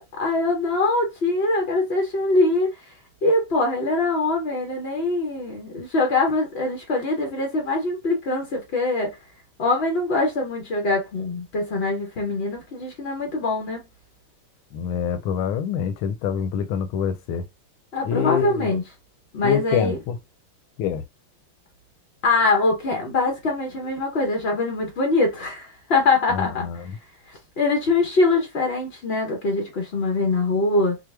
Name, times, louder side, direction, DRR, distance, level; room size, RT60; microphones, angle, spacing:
voice 1, 0.2-2.7 3.2-9.2 9.6-13.8 17.9-18.8 19.3-20.0 22.2-26.7 27.3-31.0, left 2 dB, 60° left, 0.6 m, -23 dB
voice 2, 14.7-17.4 18.0-18.8 19.4-20.2 20.8-21.0 26.3-27.0, left 8 dB, 75° left, 1.5 m, -26 dB
4.7 x 2.1 x 3.3 m
omnidirectional pair, 2.4 m